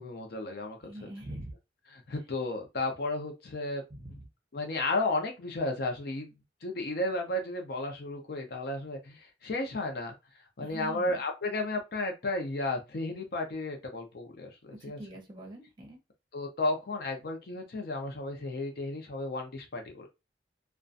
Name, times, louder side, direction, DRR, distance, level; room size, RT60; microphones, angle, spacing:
voice 1, 0.0-1.1 1.9-3.8 4.1-4.2 4.5-6.3 6.6-10.1 10.6-15.0 16.3-20.1, left 2 dB, 60° left, 0.6 m, -33 dB
voice 2, 0.8-1.5 3.9-4.2 10.6-11.2 14.8-16.0, right 1 dB, 25° right, 0.8 m, -43 dB
2.4 x 2.2 x 2.5 m
head